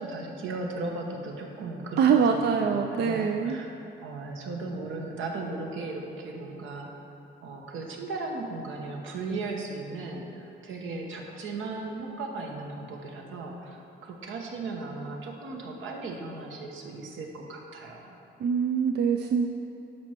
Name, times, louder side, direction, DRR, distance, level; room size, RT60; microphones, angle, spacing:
voice 1, 0.0-2.0 2.3-3.7 4.0-6.9 7.4-18.1, right 3 dB, 80° right, 1 dB, 1.1 m, -36 dB
voice 2, 2.0-3.6 18.4-19.5, right 6 dB, 55° right, 4 dB, 0.4 m, -24 dB
11.0 x 4.5 x 4.4 m, 2.8 s
cardioid pair, 90°, 20 cm